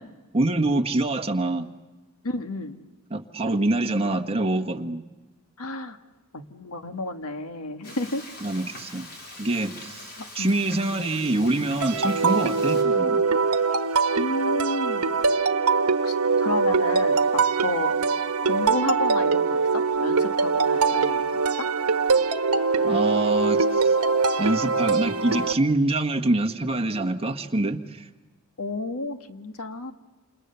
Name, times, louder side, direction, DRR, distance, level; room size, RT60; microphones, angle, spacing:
voice 1, 0.3-1.7 3.1-5.0 8.4-9.1 9.4-13.3 22.8-23.9 24.4-28.1, right 2 dB, 25° right, 5 dB, 1.4 m, -25 dB
voice 2, 2.2-2.8 5.6-6.0 6.3-8.2 10.2-10.5 12.8-13.0 14.2-15.2 16.0-17.9 18.4-21.4 28.6-29.9, left 2 dB, 80° left, 8 dB, 1.7 m, -31 dB
Frying (food), 7.8-12.8, left 2 dB, 45° left, 4.9 m, -43 dB
sound 1, 11.8-25.5, right 4 dB, 85° right, 1.2 m, -22 dB
28.5 x 28.0 x 6.9 m, 1.1 s
head